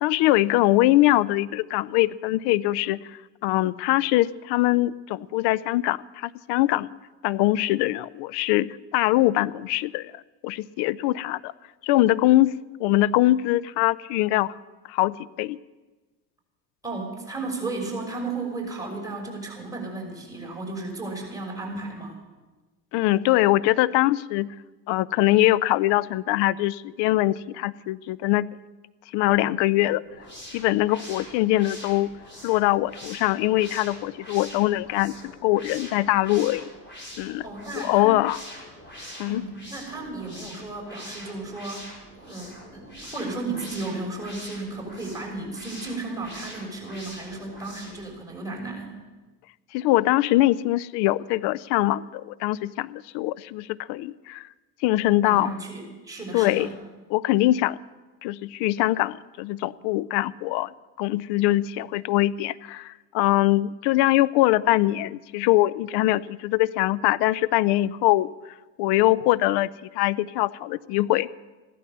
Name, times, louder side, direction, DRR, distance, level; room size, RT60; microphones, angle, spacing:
voice 1, 0.0-6.9 7.2-10.1 10.4-11.5 11.8-14.5 14.9-15.6 22.9-24.5 24.9-28.5 29.1-30.0 30.5-32.1 32.4-35.2 35.4-36.6 37.2-37.4 37.7-38.4 39.2-39.4 49.7-54.5 54.8-55.5 56.3-56.7 57.1-57.8 58.2-60.7 61.0-68.3 68.8-69.7 69.9-71.3, left 16 dB, 60° left, 20 dB, 0.6 m, -22 dB
voice 2, 16.8-22.2 37.4-38.2 39.3-49.0 55.2-56.7, right 3 dB, 5° right, -2 dB, 6.0 m, -34 dB
sound 1, 30.0-48.1, equal, 25° left, 6.0 m, -43 dB
15.0 x 12.5 x 6.7 m, 1.2 s
hypercardioid pair, 75°, 48 cm